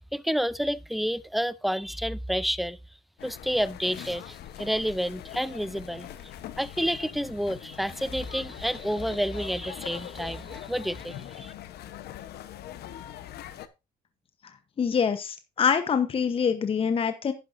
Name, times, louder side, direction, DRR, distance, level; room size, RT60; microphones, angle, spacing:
voice 1, 0.0-2.8 3.2-6.1 6.6-11.5, equal, ahead, 0.5 m, -29 dB
sound 1, 3.2-13.7, left 11 dB, 70° left, 1.1 m, -42 dB
voice 2, 14.8-17.3, left 6 dB, 35° left, 1.0 m, -25 dB
11.0 x 10.5 x 2.6 m
cardioid pair, 110°, 17 cm